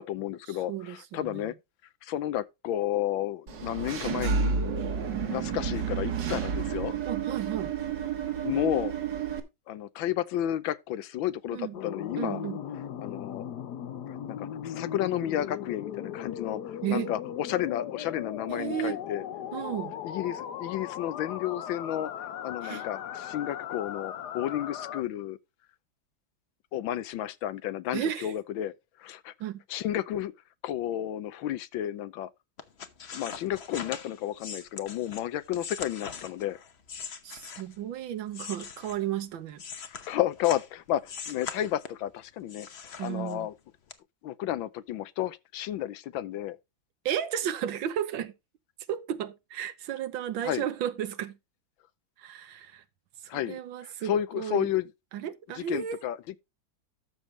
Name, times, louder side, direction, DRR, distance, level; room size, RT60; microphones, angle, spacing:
voice 1, 0.0-1.5 2.0-4.6 5.3-6.9 8.4-8.9 9.7-12.4 13.0-13.4 14.3-19.2 20.0-25.4 26.7-28.7 29.0-29.3 29.7-30.3 30.6-32.3 33.1-36.6 39.9-43.5 44.2-46.6 50.4-50.6 53.3-54.8 55.5-56.4, left 12 dB, 80° left, 1.5 m, -32 dB
voice 2, 0.7-1.5 7.0-7.7 11.5-11.7 12.2-12.6 16.8-17.1 18.5-19.0 19.5-20.0 22.6-22.8 27.9-28.3 29.4-29.6 37.2-39.6 43.0-43.5 47.0-48.3 48.9-51.4 52.2-52.8 53.3-54.7 55.1-56.0, right 10 dB, 80° right, 1.7 m, -33 dB
Engine / Mechanisms, 3.5-9.4, right 6 dB, 65° right, 2.0 m, -30 dB
sound 1, 11.7-25.0, left 9 dB, 65° left, 1.3 m, -38 dB
sound 2, 32.6-37.9 38.3-40.7 41.0-42.1 42.5-43.5 43.9-44.0, left 6 dB, 45° left, 0.9 m, -41 dB
13.0 x 6.8 x 3.2 m
omnidirectional pair, 2.1 m